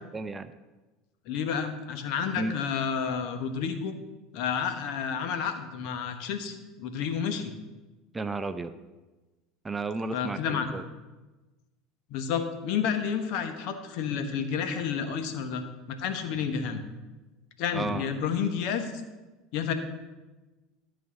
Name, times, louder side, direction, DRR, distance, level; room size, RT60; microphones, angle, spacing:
voice 1, 0.1-0.5 2.4-2.5 8.1-8.8 9.6-10.8 17.7-18.0, right 3 dB, 15° right, 11 dB, 0.5 m, -33 dB
voice 2, 1.3-3.9 4.3-7.5 10.1-10.8 12.1-15.6 15.9-16.8 17.6-18.9 19.5-19.7, left 7 dB, 60° left, 8 dB, 1.0 m, -30 dB
12.5 x 4.2 x 6.3 m, 1.2 s
hypercardioid pair, 75°, 0 cm